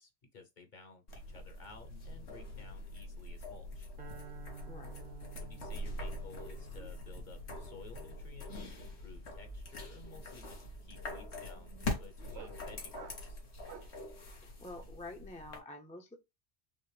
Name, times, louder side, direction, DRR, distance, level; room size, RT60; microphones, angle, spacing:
voice 1, 0.0-3.9 5.4-13.4, left 4 dB, 50° left, 0.9 m, -55 dB
sound 1, 1.1-15.6, left 2 dB, 85° left, 1.4 m, -44 dB
sound 2, 4.0-10.3, right 6 dB, 55° right, 1.0 m, -54 dB
voice 2, 4.7-5.0 14.4-16.1, left 2 dB, 10° left, 0.5 m, -48 dB
sound 3, 7.3-7.6 7.8-14.1, right 7 dB, 90° right, 1.1 m, -56 dB
5.4 x 2.0 x 3.2 m
omnidirectional pair, 1.1 m